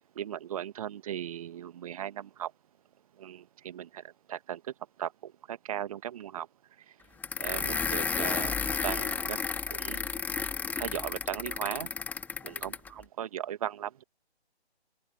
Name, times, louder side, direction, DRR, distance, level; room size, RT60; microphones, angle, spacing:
voice 1, 0.1-2.5 3.2-4.0 4.3-4.6 5.0-6.5 7.4-8.6 8.8-9.4 9.7-10.1 10.8-11.9 12.4-14.0, right 10 dB, 35° right, 1.7 m, -37 dB
sound 1, 7.2-12.9, left 5 dB, 5° left, 1.8 m, -32 dB
open air
figure-of-eight pair, 140°, 33 cm